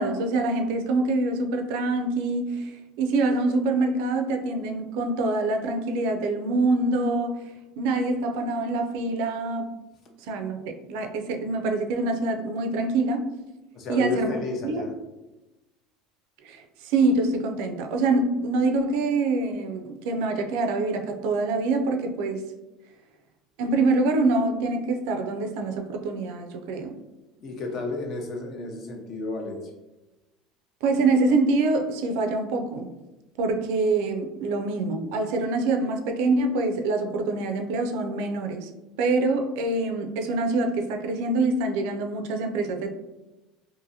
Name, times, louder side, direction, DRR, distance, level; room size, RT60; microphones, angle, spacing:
voice 1, 0.0-7.4 7.8-9.7 10.3-13.3 13.9-14.3 14.6-14.8 16.4-22.4 23.6-27.0 30.8-32.9 33.4-38.7 39.0-42.9, right 3 dB, 75° right, 5 dB, 0.3 m, -25 dB
voice 2, 13.7-14.9 27.4-29.7, left 2 dB, 45° left, 2 dB, 0.6 m, -32 dB
2.7 x 2.5 x 2.7 m, 1.0 s
cardioid pair, 135°, 0 cm